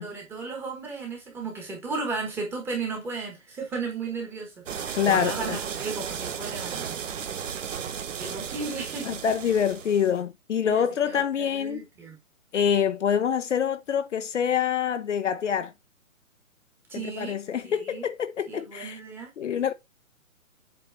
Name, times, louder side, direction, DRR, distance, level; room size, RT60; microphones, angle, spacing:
voice 1, 0.0-7.0 8.2-9.1 10.7-12.2 16.9-17.4 17.6-18.1 18.5-19.3, right 4 dB, 5° right, 1.1 m, -35 dB
sound 1, 4.7-10.2, right 7 dB, 60° right, 1.2 m, -34 dB
voice 2, 4.9-5.6 9.0-11.8 12.5-15.7 16.9-19.0 19.4-19.7, left 8 dB, 60° left, 0.7 m, -26 dB
7.7 x 3.1 x 4.5 m
hypercardioid pair, 160°, 42 cm